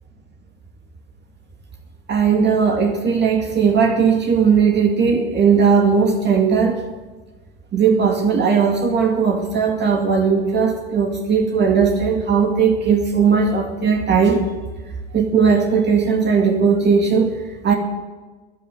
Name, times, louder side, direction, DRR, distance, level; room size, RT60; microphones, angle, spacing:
voice 1, 2.1-6.8 7.7-14.4 15.1-17.3 17.6-17.7, right 6 dB, 35° right, 1 dB, 2.3 m, -17 dB
14.0 x 9.9 x 9.3 m, 1.3 s
hypercardioid pair, 85°, 30 cm